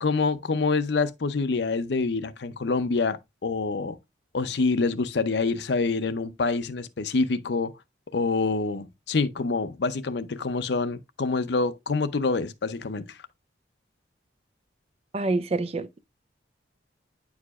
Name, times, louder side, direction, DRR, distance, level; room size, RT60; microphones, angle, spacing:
voice 1, 0.0-4.0 4.3-7.7 8.1-13.2, left 4 dB, 65° left, 0.6 m, -26 dB
voice 2, 15.1-16.0, right 2 dB, 35° right, 0.4 m, -27 dB
9.2 x 4.8 x 2.3 m
head